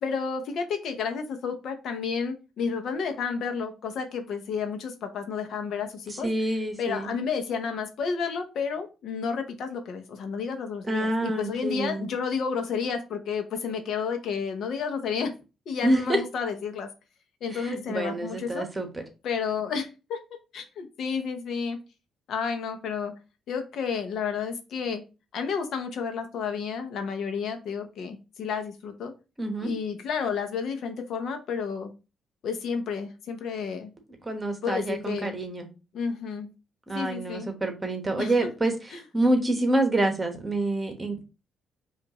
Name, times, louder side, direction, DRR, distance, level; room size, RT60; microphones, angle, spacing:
voice 1, 0.0-6.3 6.8-15.3 15.7-16.9 17.4-18.7 19.2-20.2 20.5-21.8 22.3-23.1 23.5-25.0 25.3-29.1 29.6-31.9 32.4-33.9 34.6-35.4 35.9-36.5 36.9-37.5 38.2-38.3 38.9-39.0, left 6 dB, 70° left, 0.8 m, -31 dB
voice 2, 6.1-7.1 10.8-12.0 15.8-16.2 17.5-19.0 29.4-29.7 34.2-35.7 36.9-41.2, right 1 dB, 20° right, 1.1 m, -27 dB
5.2 x 2.5 x 3.0 m
cardioid pair, 90°, 0 cm